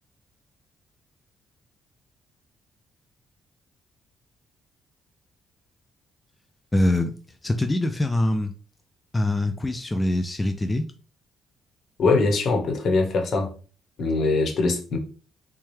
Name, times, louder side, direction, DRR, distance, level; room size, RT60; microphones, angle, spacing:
voice 1, 6.7-7.2 7.4-8.5 9.1-10.9, left 1 dB, 15° left, 6 dB, 0.3 m, -24 dB
voice 2, 12.0-13.5 14.0-15.0, left 3 dB, 60° left, 3 dB, 1.0 m, -22 dB
4.0 x 2.3 x 3.2 m, 0.38 s
cardioid pair, 90°, 0 cm